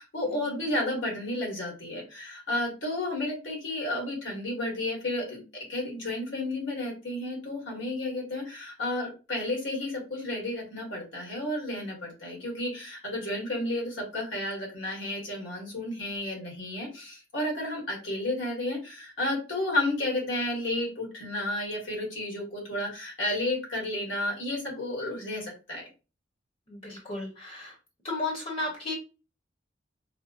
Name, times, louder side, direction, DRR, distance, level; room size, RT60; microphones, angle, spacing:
voice 1, 0.0-25.9, left 1 dB, 80° left, -1 dB, 1.4 m, -32 dB
voice 2, 26.7-27.7 28.0-28.9, left 2 dB, 40° left, -2 dB, 0.9 m, -34 dB
4.1 x 2.0 x 2.3 m, 0.31 s
head